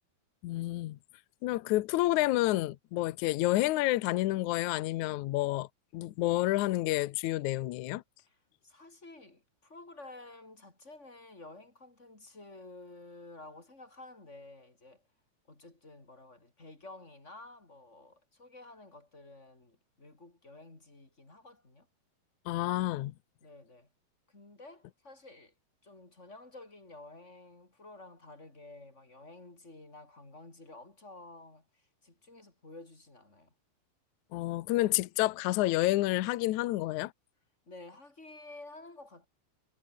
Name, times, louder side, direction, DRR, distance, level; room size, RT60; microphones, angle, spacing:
voice 1, 0.4-1.0 1.4-5.7 5.9-8.0 22.5-23.1 34.3-37.1, left 17 dB, 85° left, 1.7 m, -29 dB
voice 2, 8.2-15.1 15.5-21.9 23.4-23.9 24.3-25.5 25.8-33.5 37.7-39.3, left 2 dB, 15° left, 4.3 m, -51 dB
omnidirectional pair, 4.6 m